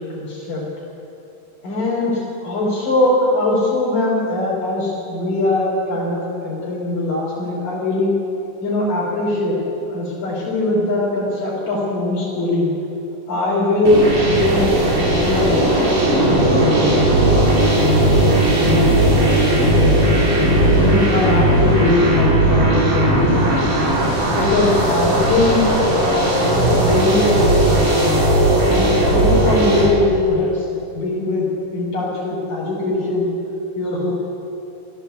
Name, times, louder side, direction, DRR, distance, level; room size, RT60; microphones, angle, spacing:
voice 1, 0.1-0.6 1.6-8.1 8.6-9.6 9.9-12.7 13.3-16.9 17.2-18.3 18.5-19.9 20.4-23.8 24.3-25.6 26.0-28.2 28.7-30.7 30.9-31.5 31.7-33.3 33.8-34.1, left 2 dB, 70° left, -5 dB, 6.1 m, -21 dB
sound 1, 13.9-29.9, right 1 dB, 45° right, 6.1 m, -16 dB
25.5 x 17.0 x 8.2 m, 2.8 s
omnidirectional pair, 4.0 m